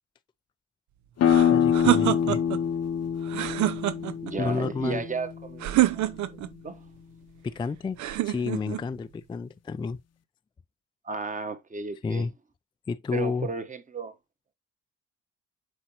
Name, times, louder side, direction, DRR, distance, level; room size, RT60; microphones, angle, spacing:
sound 1, 1.2-6.6, left 8 dB, 55° left, 0.8 m, -26 dB
sound 2, 1.2-2.6 3.3-4.3 5.6-6.5 8.0-8.8, right 15 dB, 70° right, 0.6 m, -26 dB
voice 1, 1.5-2.4 4.4-5.0 7.4-10.0 12.0-12.3 12.9-13.5, left 4 dB, 15° left, 0.3 m, -30 dB
voice 2, 4.2-5.6 5.9-6.1 6.6-6.8 11.0-12.3 13.1-14.1, right 4 dB, 25° right, 1.1 m, -34 dB
7.8 x 4.5 x 2.9 m
cardioid pair, 90°, 30 cm